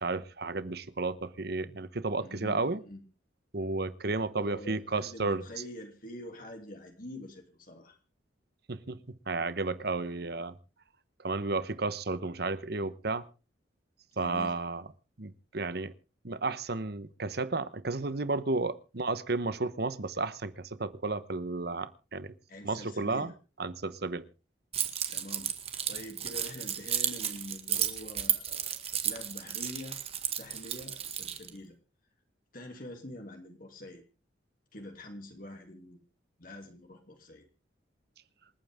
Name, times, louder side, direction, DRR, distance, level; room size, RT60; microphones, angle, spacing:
voice 1, 0.0-2.8 3.5-5.4 8.7-10.5 11.2-13.2 14.2-14.9 15.2-15.9 16.2-22.3 22.6-23.3 23.6-24.2, right 3 dB, 55° right, 15 dB, 1.1 m, -32 dB
voice 2, 2.1-3.0 4.1-8.0 14.1-14.5 22.5-23.3 25.1-25.5 25.9-30.0 30.4-31.8 32.5-34.0 34.7-36.0 36.4-37.4, left 1 dB, 50° left, 3 dB, 2.8 m, -45 dB
Keys jangling, 24.7-31.5, right 9 dB, 35° right, 1.9 m, -33 dB
27.5 x 9.2 x 3.6 m, 0.34 s
head